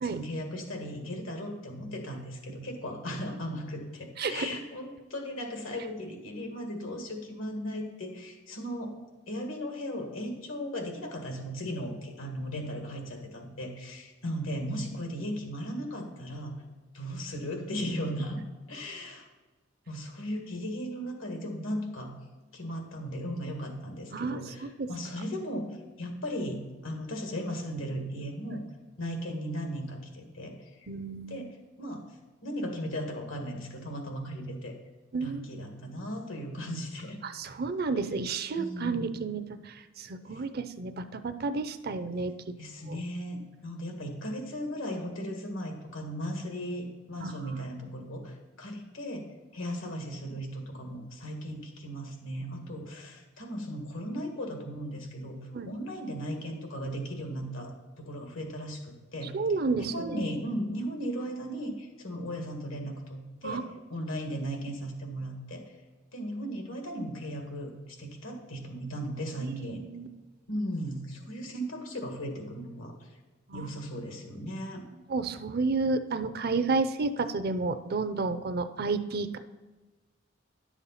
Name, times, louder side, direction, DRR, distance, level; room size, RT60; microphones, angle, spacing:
voice 1, 0.0-8.9 9.3-16.5 16.9-18.4 18.7-19.3 19.9-22.1 22.5-28.7 29.0-30.9 31.3-32.1 32.4-34.7 35.2-37.2 38.6-39.1 40.3-40.4 42.6-57.7 58.0-59.4 59.8-63.6 63.9-65.7 66.1-69.8 70.5-72.9 73.5-74.8, equal, 90° left, 2 dB, 1.9 m, -36 dB
voice 2, 4.2-4.5 24.1-24.4 24.8-24.9 28.5-28.6 30.9-31.5 35.1-35.5 37.2-42.3 42.9-43.0 47.2-47.3 55.5-55.7 59.3-60.3 63.4-63.6 69.4-70.1 73.5-73.7 75.1-79.4, right 4 dB, 50° right, 11 dB, 0.5 m, -31 dB
10.5 x 7.2 x 4.1 m, 1.2 s
head